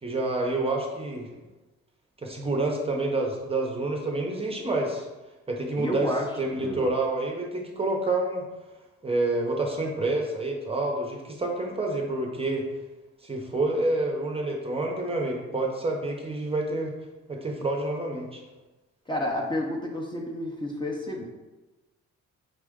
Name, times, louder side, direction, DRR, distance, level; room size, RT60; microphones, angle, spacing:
voice 1, 0.0-1.3 2.2-5.1 5.5-6.1 6.4-8.4 9.0-12.6 13.2-16.9 17.3-18.4, right 2 dB, 20° right, 0 dB, 0.7 m, -28 dB
voice 2, 5.8-6.2 6.6-6.9 19.1-21.2, left 1 dB, 15° left, -1 dB, 0.7 m, -30 dB
5.4 x 2.5 x 3.6 m, 1.1 s
cardioid pair, 90°, 30 cm